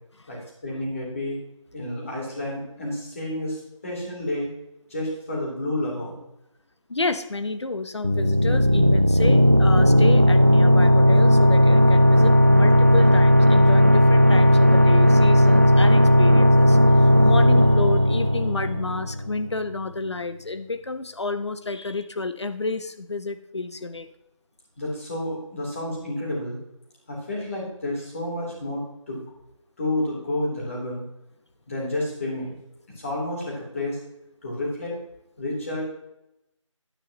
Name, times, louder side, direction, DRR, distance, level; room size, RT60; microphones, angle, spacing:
voice 1, 0.3-1.4 1.7-4.5 4.9-6.2 24.8-26.6 27.1-29.2 29.8-31.0 31.7-32.5 32.9-34.0 34.4-35.0 35.4-35.8, left 1 dB, 25° left, -4 dB, 3.3 m, -30 dB
voice 2, 6.9-24.1, left 3 dB, 55° left, 11 dB, 1.0 m, -30 dB
sound 1, 8.0-19.4, equal, 25° right, 0.4 m, -16 dB
11.0 x 10.0 x 3.0 m, 0.84 s
figure-of-eight pair, 175°, 17 cm